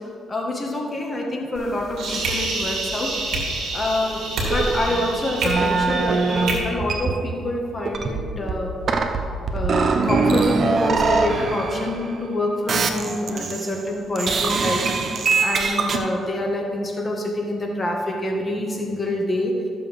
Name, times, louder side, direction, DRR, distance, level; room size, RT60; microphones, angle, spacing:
voice 1, 0.3-3.2 3.7-8.7 9.5-14.9 15.4-19.6, left 1 dB, 30° left, 0 dB, 1.5 m, -26 dB
sound 1, 1.5-6.6, right 2 dB, 75° right, 2.2 m, -28 dB
sound 2, 4.4-6.5 6.8-7.5 7.9-12.3 12.7-13.8 14.2-16.0, right 4 dB, 50° right, 0.8 m, -23 dB
14.0 x 6.8 x 3.5 m, 2.3 s
cardioid pair, 90°, 0 cm